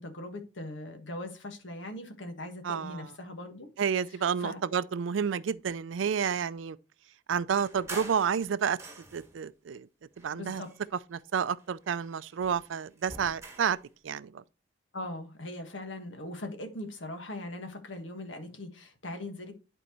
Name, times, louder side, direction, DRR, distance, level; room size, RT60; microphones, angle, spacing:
voice 1, 0.0-3.7 4.4-4.6 10.3-10.7 14.9-19.5, left 1 dB, 75° left, 1.5 m, -40 dB
voice 2, 2.6-3.1 3.8-6.8 7.3-8.8 9.1-9.9 10.2-10.6 11.1-13.8 14.0-14.4, right 7 dB, 90° right, 0.4 m, -30 dB
sound 1, 7.6-9.4 10.1-11.3 11.6-13.8, right 2 dB, 15° right, 1.5 m, -47 dB
11.0 x 4.5 x 3.0 m
head